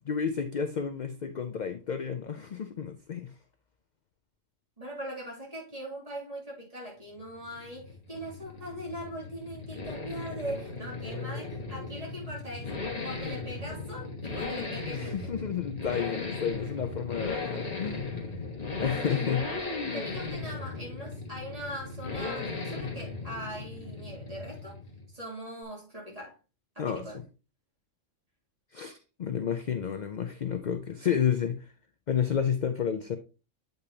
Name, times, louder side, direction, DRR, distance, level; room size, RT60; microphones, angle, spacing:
voice 1, 0.1-3.3 14.9-18.5 18.8-19.4 26.8-27.1 28.7-31.7 32.1-33.2, left 7 dB, 60° left, 0.4 m, -31 dB
voice 2, 4.8-12.7 13.0-15.3 19.0-19.3 19.9-24.8 25.1-26.4 26.7-27.2, equal, 25° right, 2.9 m, -41 dB
sound 1, 7.1-25.2, left 3 dB, 30° left, 1.3 m, -37 dB
8.1 x 5.3 x 2.8 m
omnidirectional pair, 1.4 m